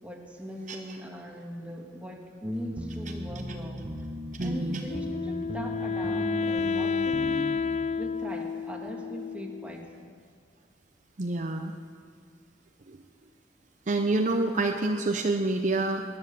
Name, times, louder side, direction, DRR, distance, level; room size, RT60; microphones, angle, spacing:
voice 1, 0.0-3.9 4.3-7.6 8.0-10.1, equal, 10° right, 0 dB, 1.8 m, -40 dB
sound 1, 2.4-7.7, equal, 25° right, 1.1 m, -37 dB
voice 2, 4.4-4.8 11.2-11.7 12.9-13.0 13.9-16.0, right 2 dB, 45° right, 4 dB, 0.7 m, -27 dB
Wind instrument woodwind instrument, 4.9-9.9, left 5 dB, 40° left, 0.3 m, -30 dB
19.0 x 11.0 x 6.8 m, 2.1 s
head